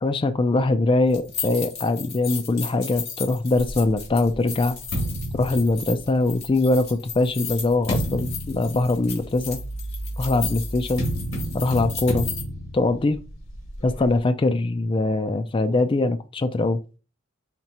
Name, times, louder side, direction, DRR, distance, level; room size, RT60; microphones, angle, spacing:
voice 1, 0.0-4.8 5.3-9.6 10.2-11.1 11.5-12.3 12.7-13.2 13.8-16.8, left 2 dB, 25° left, 8 dB, 0.4 m, -22 dB
sound 1, 1.1-12.4, left 6 dB, 50° left, 2.2 m, -35 dB
sound 2, 3.6-6.4 7.1-14.2, equal, 70° left, 2.3 m, -32 dB
5.9 x 3.1 x 2.9 m, 0.32 s
head